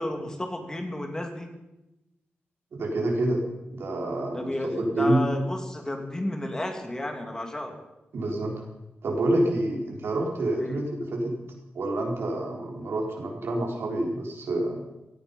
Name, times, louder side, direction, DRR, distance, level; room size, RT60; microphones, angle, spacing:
voice 1, 0.0-1.5 4.3-7.8 10.5-10.8, left 1 dB, 15° left, 4 dB, 2.6 m, -32 dB
voice 2, 2.7-3.4 3.7-5.3 8.1-8.5 9.0-11.3 11.7-14.8, right 1 dB, 90° right, 0 dB, 4.2 m, -27 dB
17.5 x 14.5 x 5.6 m, 0.96 s
wide cardioid pair, 140°, 4 cm